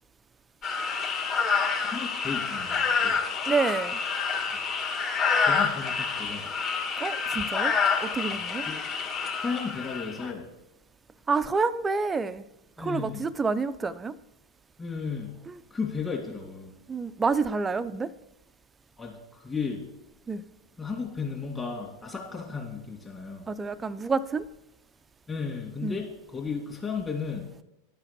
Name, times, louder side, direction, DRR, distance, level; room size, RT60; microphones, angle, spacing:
sound 1, 0.6-10.3, left 5 dB, 35° left, 2.0 m, -28 dB
voice 1, 1.7-3.2 5.4-6.4 8.3-8.4 8.7-8.8 9.4-10.4 12.8-13.2 14.8-15.3 15.7-16.7 19.0-19.8 20.8-23.5 25.3-27.5, left 5 dB, 20° left, -3 dB, 2.2 m, -34 dB
voice 2, 3.5-4.0 7.0-7.7 8.0-8.7 11.3-12.5 12.8-14.2 15.5-15.6 16.9-18.1 20.3-20.4 23.5-24.5 25.8-26.0, right 4 dB, 20° right, 13 dB, 0.5 m, -28 dB
11.0 x 5.7 x 6.8 m, 0.89 s
figure-of-eight pair, 90°, 0 cm